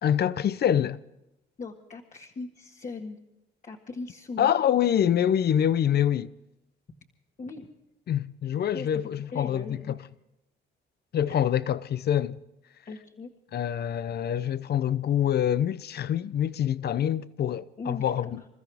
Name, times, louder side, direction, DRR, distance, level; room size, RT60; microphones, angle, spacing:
voice 1, 0.0-1.0 4.4-6.3 8.1-10.0 11.1-12.4 13.5-18.4, left 10 dB, 55° left, 0.7 m, -25 dB
voice 2, 1.6-3.2 3.6-4.5 7.4-7.7 8.7-10.1 11.3-11.4 12.8-13.3 17.8-18.4, left 3 dB, 40° left, 1.7 m, -39 dB
28.0 x 14.0 x 3.5 m
cardioid pair, 90°, 20 cm